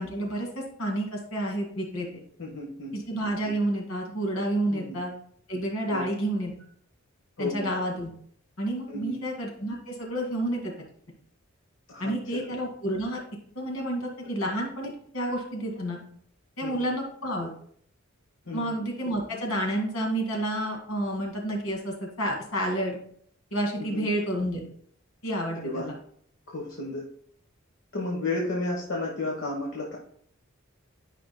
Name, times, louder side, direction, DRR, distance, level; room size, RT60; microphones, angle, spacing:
voice 1, 0.0-2.2 2.9-5.1 5.5-6.5 7.4-8.1 8.6-10.7 12.0-13.2 13.6-16.0 16.6-17.5 18.5-23.0 23.5-24.6 25.2-25.9, right 1 dB, 85° left, 0 dB, 2.1 m, -30 dB
voice 2, 2.4-2.9 4.7-5.0 5.8-6.1 7.4-7.7 8.9-9.2 11.9-12.4 16.6-16.9 18.5-18.7 23.8-24.1 25.6-25.9 26.5-27.0 27.9-30.0, left 2 dB, 65° left, -2 dB, 1.2 m, -32 dB
12.5 x 5.2 x 2.2 m, 0.63 s
head